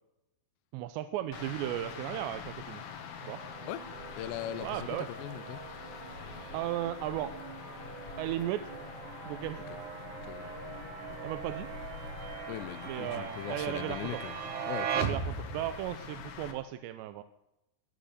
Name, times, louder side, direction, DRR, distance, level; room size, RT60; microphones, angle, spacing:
voice 1, 0.7-2.8 3.3-3.4 4.6-5.1 6.5-7.3 8.2-8.7 9.3-9.6 11.2-11.7 12.9-14.0 14.9-17.2, right 13 dB, 85° right, 2.9 m, -35 dB
sound 1, 1.3-16.5, left 6 dB, 70° left, 3.5 m, -45 dB
sound 2, 3.2-15.8, right 7 dB, 60° right, 2.3 m, -40 dB
voice 2, 4.2-5.6 9.7-9.8 10.2-10.6 12.5-14.4 14.7-15.7, left 13 dB, 85° left, 2.9 m, -40 dB
21.0 x 7.5 x 6.6 m
omnidirectional pair, 5.0 m